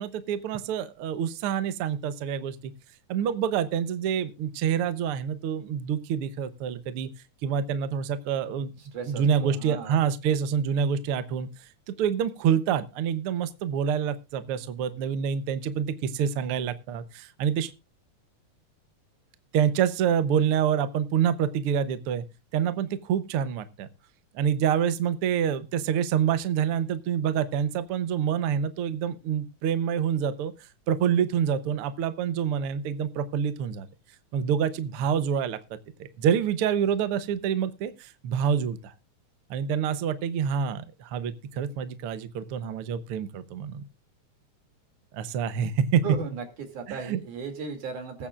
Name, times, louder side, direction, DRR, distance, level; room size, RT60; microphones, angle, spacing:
voice 1, 0.0-2.7 3.1-7.1 7.4-8.7 9.1-11.5 12.0-17.7 19.5-22.2 22.5-23.9 24.3-30.5 30.9-33.9 34.3-35.6 36.0-38.9 39.5-43.8 45.1-46.0 46.9-47.2, right 8 dB, 65° right, 12 dB, 1.4 m, -27 dB
voice 2, 8.8-10.1 46.0-48.3, right 4 dB, 85° right, 5 dB, 4.1 m, -36 dB
21.0 x 8.7 x 2.5 m, 0.27 s
omnidirectional pair, 3.5 m